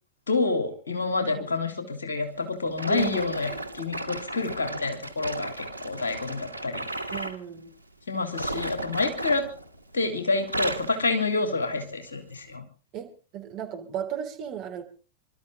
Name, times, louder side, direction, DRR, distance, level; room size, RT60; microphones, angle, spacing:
voice 1, 0.3-7.1 8.1-9.5 9.9-12.6, left 3 dB, 70° left, 6 dB, 3.2 m, -28 dB
sound 1, 2.7-7.4 8.2-10.0 10.3-11.0 11.6-11.8 12.4-12.5, right 1 dB, 90° left, 1.3 m, -34 dB
voice 2, 2.9-3.6 7.1-7.7 12.9-14.8, right 9 dB, 40° right, 4 dB, 3.4 m, -35 dB
26.5 x 13.0 x 3.8 m, 0.37 s
figure-of-eight pair, 90°, 0 cm